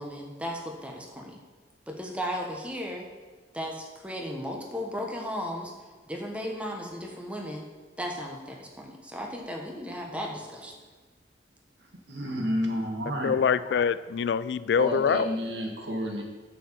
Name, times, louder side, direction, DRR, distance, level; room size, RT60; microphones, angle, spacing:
voice 1, 0.0-1.4 1.9-3.1 3.5-5.7 6.1-7.7 8.0-10.8, equal, 5° right, 1 dB, 1.1 m, -35 dB
voice 2, 12.1-13.3 14.8-16.2, equal, 80° right, 1 dB, 1.6 m, -30 dB
voice 3, 13.2-15.3, left 7 dB, 65° left, 16 dB, 0.3 m, -24 dB
8.9 x 4.7 x 6.9 m, 1.3 s
head